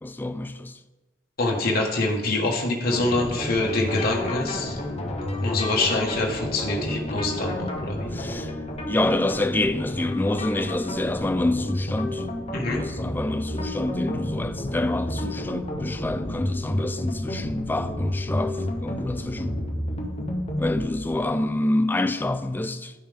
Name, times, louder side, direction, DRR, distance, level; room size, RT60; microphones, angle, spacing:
voice 1, 0.0-0.8 8.1-8.5 8.9-12.3 12.6-19.6 20.6-22.9, left 1 dB, 10° left, 0.3 m, -27 dB
voice 2, 1.4-4.8 5.4-8.1 12.5-12.8, left 2 dB, 45° left, 1.3 m, -25 dB
sound 1, 2.9-21.0, left 1 dB, 30° left, 0.9 m, -30 dB
10.5 x 5.5 x 3.5 m
head